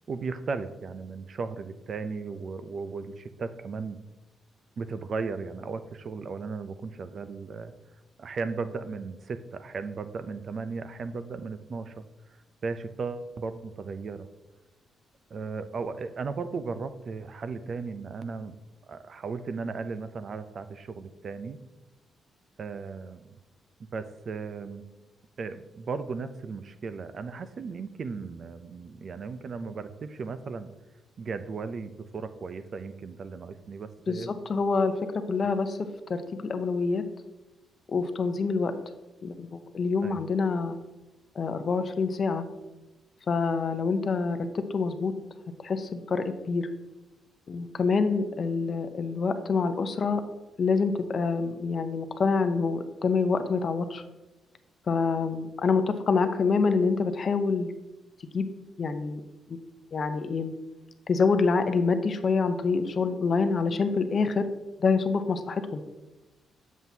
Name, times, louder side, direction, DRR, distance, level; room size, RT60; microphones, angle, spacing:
voice 1, 0.1-4.0 4.8-7.7 8.2-12.0 12.6-14.3 15.3-18.6 18.9-21.6 22.6-23.4 23.9-24.8 25.4-30.7 31.2-34.3 40.0-40.2, right 4 dB, 45° right, 12 dB, 0.5 m, -36 dB
voice 2, 34.1-34.9 35.3-35.8 36.1-37.0 37.9-38.7 39.2-40.8 41.4-42.4 43.3-45.1 45.6-46.7 47.5-50.2 50.6-54.0 54.9-57.7 58.3-58.5 58.8-59.2 59.5-59.6 59.9-60.5 61.1-64.5 64.8-65.8, left 4 dB, 45° left, 9 dB, 0.7 m, -26 dB
7.7 x 7.2 x 2.8 m, 1.1 s
cardioid pair, 115°, 0 cm